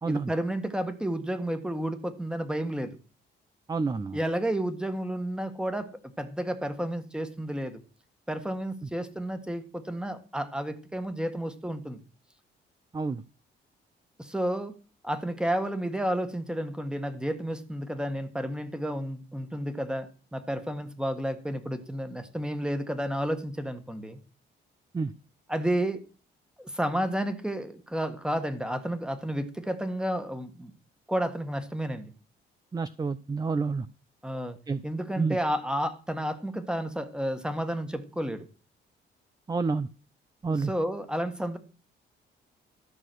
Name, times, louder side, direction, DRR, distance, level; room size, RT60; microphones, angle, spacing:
voice 1, 0.0-3.0 4.1-5.9 6.2-7.8 8.3-12.0 14.2-14.7 15.0-24.2 25.5-26.0 26.6-30.7 31.1-32.1 34.2-34.6 34.8-38.5 40.5-41.6, right 1 dB, 5° right, 1.7 m, -31 dB
voice 2, 3.7-4.2 12.9-13.2 24.9-25.1 32.7-33.9 34.7-34.8 35.2-35.4 39.5-39.9 40.4-40.7, right 4 dB, 20° right, 0.5 m, -29 dB
13.5 x 6.3 x 6.2 m
cardioid pair, 90°, 20 cm